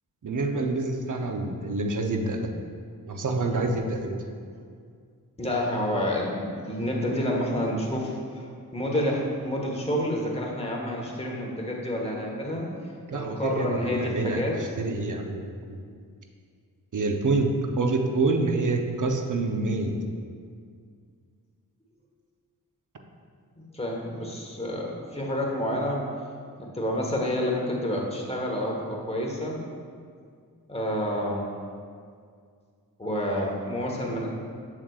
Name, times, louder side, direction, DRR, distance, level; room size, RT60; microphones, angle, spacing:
voice 1, 0.2-2.5 3.1-4.2 13.1-15.8 16.9-17.5 17.8-20.0, right 3 dB, 55° right, 3 dB, 0.8 m, -27 dB
voice 2, 5.4-12.7 13.1-14.6 23.7-26.0 26.6-29.6 30.7-31.5 33.0-34.3, equal, 15° left, -2 dB, 1.3 m, -29 dB
7.2 x 6.6 x 2.4 m, 2.1 s
cardioid pair, 60°, 36 cm